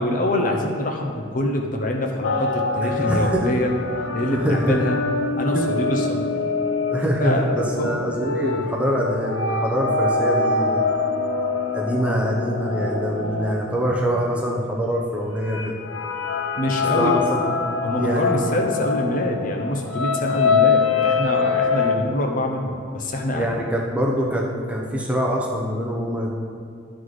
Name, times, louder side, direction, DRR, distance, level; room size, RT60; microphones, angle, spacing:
voice 1, 0.0-3.7 4.1-5.0 5.3-6.3 7.2-8.3 16.6-17.2 17.8-23.5, left 1 dB, 40° left, 1 dB, 0.7 m, -25 dB
sound 1, 2.2-14.7 15.4-22.0, left 4 dB, 90° left, 0.7 m, -24 dB
voice 2, 2.8-3.5 4.3-4.8 5.4-5.7 6.9-10.9 11.7-15.7 16.9-17.4 18.0-18.6 23.4-26.3, equal, 5° right, -2 dB, 0.7 m, -24 dB
11.5 x 4.0 x 4.8 m, 2.4 s
head